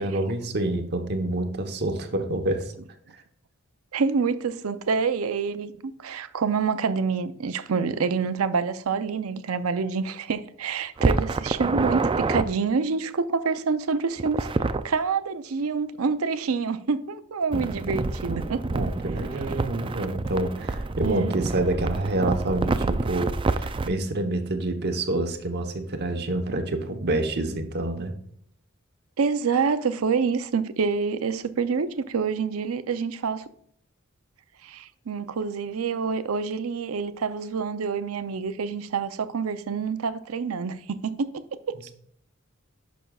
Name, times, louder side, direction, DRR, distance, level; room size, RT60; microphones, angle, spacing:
voice 1, 0.0-2.7 17.5-17.9 18.7-28.1, right 2 dB, 50° right, 1.0 m, -27 dB
voice 2, 3.9-14.5 14.8-18.6 21.0-21.3 29.2-33.5 34.6-41.8, right 5 dB, 85° right, 0.5 m, -27 dB
sound 1, 11.0-12.5 14.2-14.8 17.5-23.9, right 3 dB, 25° right, 0.4 m, -27 dB
11.0 x 6.1 x 2.3 m
head